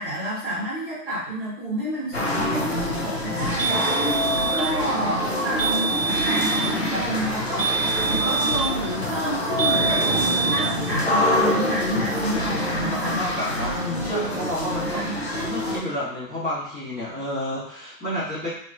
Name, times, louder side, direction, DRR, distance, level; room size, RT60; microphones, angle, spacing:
voice 1, 0.0-13.2 14.9-15.2, equal, 35° right, -8 dB, 1.5 m, -30 dB
sound 1, 2.1-15.8, left 1 dB, 45° left, 0.4 m, -26 dB
sound 2, 3.6-4.7 5.6-6.7 7.6-8.7 9.6-10.7, right 6 dB, 55° right, 1.1 m, -25 dB
voice 2, 12.6-15.1 15.4-18.5, left 1 dB, 10° left, -19 dB, 1.4 m, -30 dB
4.2 x 3.0 x 2.5 m, 0.69 s
hypercardioid pair, 180°, 49 cm